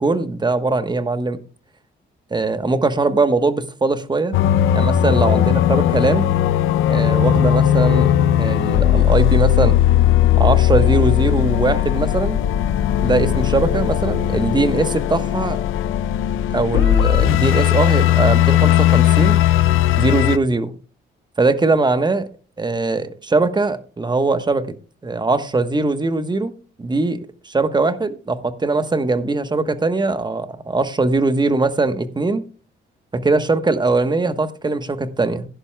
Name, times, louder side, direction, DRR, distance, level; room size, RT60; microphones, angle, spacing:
voice 1, 0.0-1.4 2.3-4.4 4.7-6.3 6.9-9.8 10.4-12.4 13.0-15.6 16.5-19.4 20.0-20.8 21.4-22.3 22.6-24.7 25.0-26.5 26.8-27.2 27.4-32.4 33.1-35.5, right 3 dB, 20° right, 1.2 m, -20 dB
sound 1, 4.3-20.4, left 12 dB, 80° left, 0.5 m, -17 dB
16.5 x 10.5 x 2.3 m
cardioid pair, 90°, 20 cm